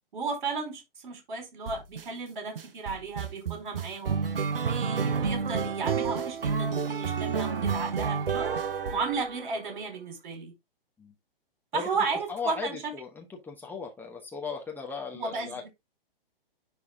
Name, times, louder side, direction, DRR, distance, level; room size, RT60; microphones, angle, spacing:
voice 1, 0.1-4.2 4.6-8.5 8.9-10.5 11.7-12.8 15.1-15.7, right 4 dB, 55° right, 4.4 m, -34 dB
sound 1, 1.7-2.0 2.6-9.7, right 6 dB, 70° right, 0.8 m, -30 dB
voice 2, 12.3-15.6, left 6 dB, 5° left, 0.9 m, -37 dB
10.5 x 3.6 x 3.5 m
figure-of-eight pair, 115°, 29 cm